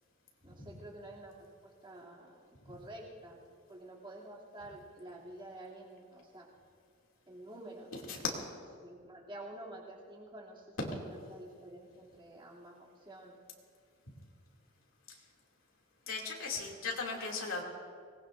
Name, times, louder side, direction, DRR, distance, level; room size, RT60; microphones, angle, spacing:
voice 1, 0.4-3.4 3.7-6.5 7.3-8.2 8.8-13.3, right 1 dB, 25° right, -5 dB, 2.8 m, -49 dB
voice 2, 16.1-17.6, left 4 dB, 80° left, -2 dB, 2.7 m, -37 dB
25.0 x 19.5 x 2.6 m, 2.2 s
head